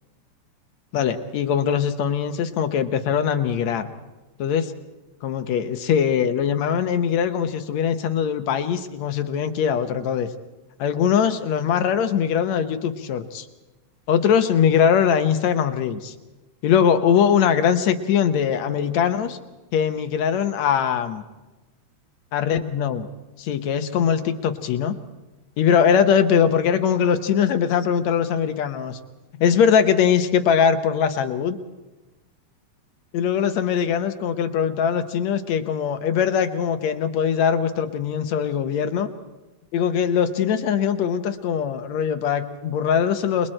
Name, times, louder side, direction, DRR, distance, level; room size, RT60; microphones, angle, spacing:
voice 1, 0.9-3.9 4.4-4.7 5.2-10.3 10.8-13.5 14.1-16.1 16.6-19.4 19.7-21.2 22.3-23.1 23.4-25.0 25.6-29.0 29.4-31.6 33.1-39.1 39.7-43.5, left 8 dB, 70° left, 8 dB, 2.2 m, -21 dB
28.0 x 21.5 x 4.4 m, 1.1 s
omnidirectional pair, 3.3 m